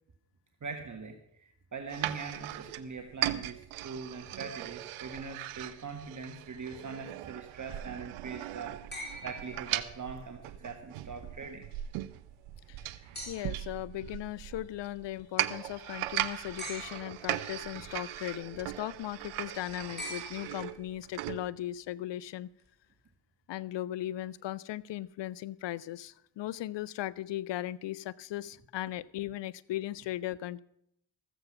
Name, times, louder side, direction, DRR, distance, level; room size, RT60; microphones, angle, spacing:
voice 1, 0.6-11.7, right 5 dB, 40° right, 5 dB, 1.4 m, -42 dB
sound 1, 1.9-21.4, right 15 dB, 85° right, 0.7 m, -38 dB
sound 2, 8.9-10.3 13.1-13.8 16.6-17.4 20.0-21.0 22.6-22.7, equal, 20° left, 4.4 m, -44 dB
voice 2, 13.3-22.5 23.5-30.6, left 14 dB, 60° left, 21 dB, 0.6 m, -37 dB
14.0 x 7.8 x 5.9 m, 0.73 s
supercardioid pair, 45°, 48 cm